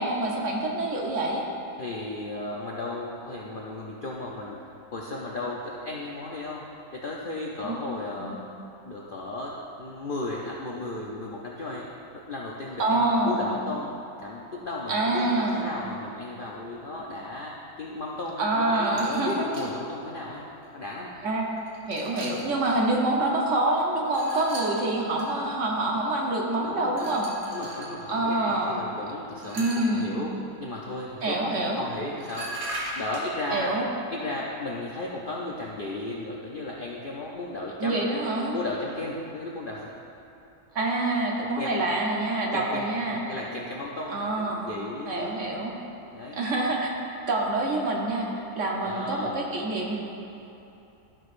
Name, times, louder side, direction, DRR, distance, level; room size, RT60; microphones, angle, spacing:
voice 1, 0.0-1.4 7.6-7.8 8.2-8.4 12.8-13.5 14.9-15.6 18.4-19.7 21.2-27.3 28.1-28.8 29.5-30.2 31.2-31.8 33.5-33.9 37.8-38.5 40.7-43.2 44.1-44.7 45.1-45.7 46.3-46.9 47.3-50.0, right 2 dB, 55° right, -1 dB, 1.1 m, -26 dB
voice 2, 1.8-4.6 4.9-6.6 6.9-8.3 8.8-9.5 9.8-11.8 12.1-13.9 14.2-17.5 17.8-20.5 20.7-21.1 22.9-23.0 26.6-27.1 27.5-30.3 30.6-32.5 32.9-33.7 34.1-39.9 41.6-41.7 42.5-45.3 46.1-46.4 48.8-49.6, left 2 dB, 55° left, -3 dB, 0.6 m, -35 dB
sound 1, 19.0-19.7 20.6-20.7 21.6-22.8 24.1-25.3 26.9-27.9 29.3-30.0 31.8-31.9 32.2-33.3, right 1 dB, 85° right, 1.8 m, -38 dB
12.5 x 6.2 x 2.5 m, 2.9 s
omnidirectional pair, 1.7 m